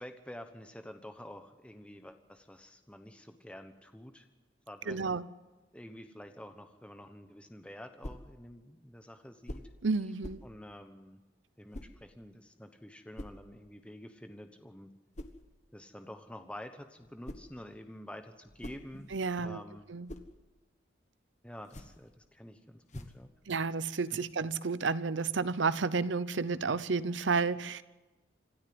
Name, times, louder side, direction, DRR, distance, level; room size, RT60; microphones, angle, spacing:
voice 1, 0.0-4.3 4.7-5.1 5.7-9.6 10.4-11.2 11.6-14.9 15.7-19.1 19.4-19.9 21.4-23.3 24.1-24.2, left 1 dB, 5° left, 7 dB, 1.1 m, -48 dB
voice 2, 4.9-5.2 9.8-10.4 19.1-19.6 19.9-20.1 23.5-27.8, right 4 dB, 75° right, 16 dB, 0.7 m, -31 dB
sound 1, 8.0-8.3 9.4-9.8 10.2-10.5 11.7-12.0 13.2-13.4 15.1-15.4 17.0-17.6 18.3-19.3 19.8-20.3 21.6-22.1 22.9-23.3, left 1 dB, 40° left, 1.3 m, -45 dB
26.0 x 13.0 x 7.8 m, 1.2 s
head